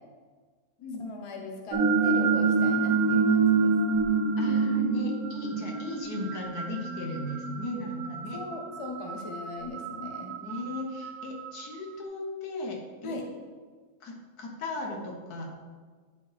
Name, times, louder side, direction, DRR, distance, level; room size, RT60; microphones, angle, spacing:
voice 1, 1.0-3.7 8.0-10.4 13.0-13.3, left 3 dB, 25° left, 2 dB, 0.7 m, -39 dB
sound 1, 1.7-11.7, right 4 dB, 90° right, 1.2 m, -27 dB
voice 2, 4.4-8.4 10.2-13.1 14.0-15.5, left 2 dB, 85° left, 1 dB, 1.7 m, -36 dB
10.5 x 4.5 x 3.4 m, 1.5 s
omnidirectional pair, 1.6 m